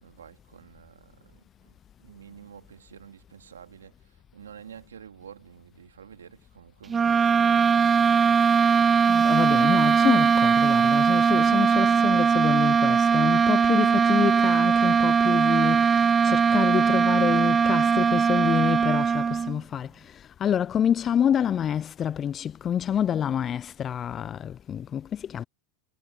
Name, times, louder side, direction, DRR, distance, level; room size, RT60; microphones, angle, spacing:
voice 1, 0.0-1.7 2.0-8.1, right 8 dB, 85° right, 3.2 m, -49 dB
sound 1, 6.9-19.6, right 6 dB, 25° right, 0.3 m, -20 dB
voice 2, 9.1-19.9 20.4-25.4, left 9 dB, 35° left, 0.5 m, -27 dB
hypercardioid pair, 85°, 0 cm